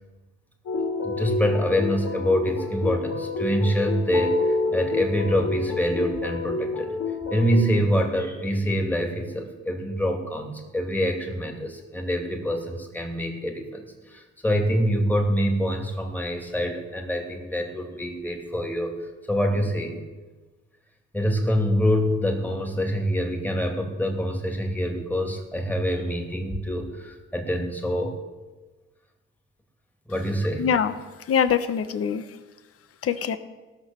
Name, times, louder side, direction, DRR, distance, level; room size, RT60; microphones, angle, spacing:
sound 1, 0.7-7.6, left 3 dB, 75° left, 3.4 m, -28 dB
voice 1, 1.0-6.9 7.3-18.9 19.3-20.0 21.1-28.2 30.1-30.6, equal, 5° left, 2 dB, 2.6 m, -25 dB
voice 2, 30.6-30.9 31.3-32.2 33.0-33.4, left 7 dB, 50° left, 12 dB, 0.9 m, -23 dB
17.0 x 6.1 x 7.2 m, 1.2 s
cardioid pair, 90°, 30 cm